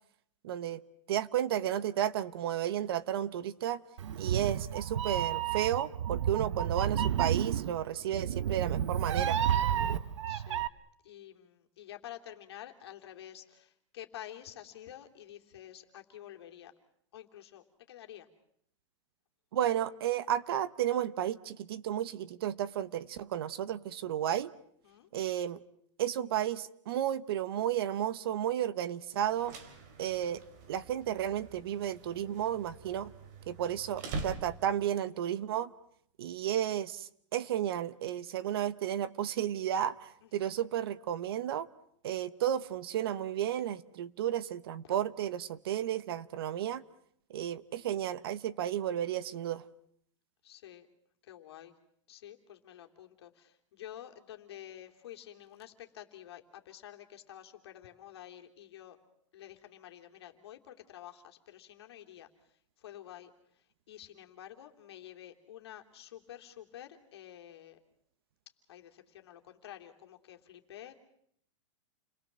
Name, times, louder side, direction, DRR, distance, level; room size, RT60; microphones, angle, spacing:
voice 1, 0.4-0.8 1.1-3.8 4.2-9.4 19.5-24.5 25.1-25.6 26.0-29.6 30.0-30.4 30.7-33.1 33.5-35.7 36.2-41.7 42.0-46.8 47.3-49.6, right 11 dB, 50° right, 1.0 m, -33 dB
Meow, 4.0-10.7, right 9 dB, 75° right, 1.1 m, -31 dB
voice 2, 10.3-10.6 11.0-16.7 17.1-18.3 24.8-25.1 40.2-40.5 44.8-45.0 50.4-50.9 51.2-51.7 52.1-59.0 59.3-62.3 62.8-63.3 63.9-67.8 68.7-71.0, left 12 dB, 55° left, 3.1 m, -49 dB
sound 1, 29.2-35.0, right 3 dB, 35° right, 2.8 m, -45 dB
29.5 x 21.5 x 7.5 m
supercardioid pair, 180°, 16 cm